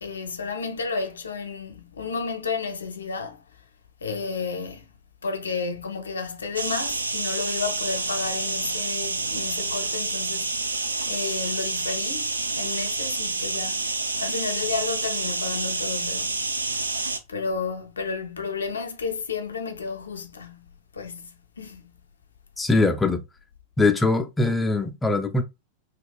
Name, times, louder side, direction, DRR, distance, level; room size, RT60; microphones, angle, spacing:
voice 1, 0.0-3.4 4.0-4.9 5.2-10.6 11.1-13.9 14.2-16.5 17.3-22.0, left 5 dB, 70° left, 0.5 m, -32 dB
sound 1, 6.6-17.2, right 3 dB, 80° right, 0.3 m, -28 dB
voice 2, 22.6-23.2 23.8-25.4, left 3 dB, 10° left, 0.4 m, -22 dB
3.4 x 2.3 x 2.3 m
figure-of-eight pair, 90°, 0 cm